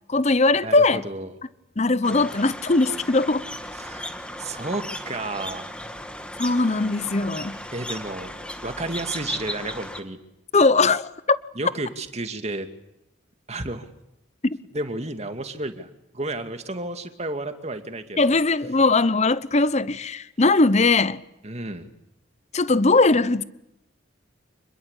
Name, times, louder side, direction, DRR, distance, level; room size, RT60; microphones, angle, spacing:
voice 1, 0.1-1.0 1.8-3.4 6.4-7.6 10.5-11.0 11.3-11.4 14.4-14.6 18.2-21.2 22.5-23.4, left 3 dB, 35° left, 0.9 m, -20 dB
voice 2, 0.6-1.3 3.8-5.7 7.7-8.3 8.6-10.2 11.6-12.7 13.5-13.9 14.7-15.9 16.1-18.4 21.4-21.9, right 2 dB, 35° right, 2.4 m, -32 dB
sound 1, 2.0-10.0, left 1 dB, 5° left, 2.0 m, -36 dB
27.0 x 21.5 x 8.4 m
head